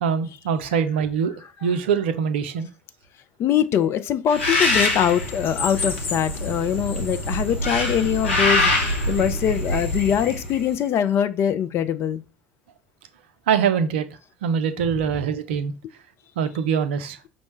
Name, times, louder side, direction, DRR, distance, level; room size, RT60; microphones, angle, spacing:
voice 1, 0.0-1.3 1.6-2.7 13.5-14.1 14.4-15.7 16.4-17.2, right 7 dB, 65° right, 0.5 m, -23 dB
voice 2, 3.4-12.2, left 9 dB, 40° left, 0.4 m, -23 dB
Bird, 4.3-10.7, left 1 dB, 75° left, 0.7 m, -24 dB
5.4 x 2.1 x 3.1 m
figure-of-eight pair, 65°, 7 cm